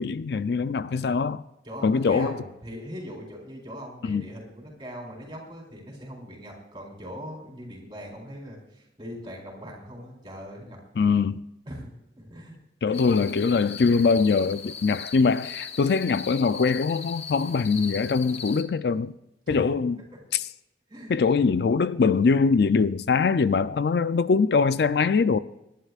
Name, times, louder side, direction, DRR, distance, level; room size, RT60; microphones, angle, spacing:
voice 1, 0.0-1.4 1.8-2.4 4.0-4.3 11.0-11.4 12.8-19.1 19.5-20.0 20.3-20.4 21.1-25.4, left 5 dB, 60° left, 0.4 m, -22 dB
voice 2, 0.8-1.2 1.6-10.8 11.7-11.9 12.2-12.6 12.9-13.1 19.5-19.7 20.1-20.2 20.9-21.5, equal, 25° right, 4.1 m, -41 dB
sound 1, 12.9-18.6, left 6 dB, 35° left, 0.9 m, -39 dB
26.0 x 11.0 x 2.4 m
head